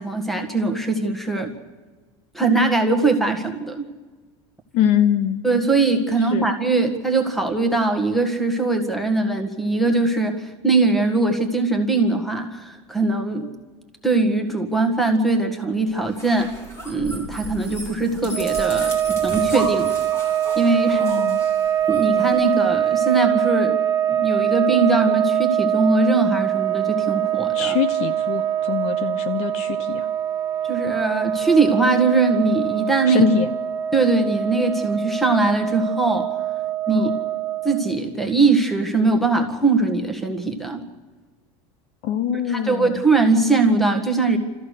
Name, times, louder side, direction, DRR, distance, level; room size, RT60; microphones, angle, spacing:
voice 1, 0.0-1.5 2.3-3.9 5.4-13.5 14.0-16.5 16.9-19.9 20.6-21.0 21.9-23.8 24.1-27.8 30.7-33.3 33.9-36.3 36.9-37.1 37.6-40.8 42.5-44.4, right 3 dB, ahead, 5 dB, 1.7 m, -21 dB
voice 2, 4.7-5.4 6.3-6.5 21.0-21.4 27.5-30.1 33.1-33.5 36.9-37.1 42.0-43.0, left 9 dB, 50° left, 13 dB, 0.9 m, -23 dB
sound 1, 16.0-23.0, equal, 20° left, 3.7 m, -36 dB
sound 2, 18.3-38.0, right 10 dB, 30° right, 1.2 m, -23 dB
29.0 x 14.0 x 6.6 m, 1.4 s
supercardioid pair, 150°, 14 cm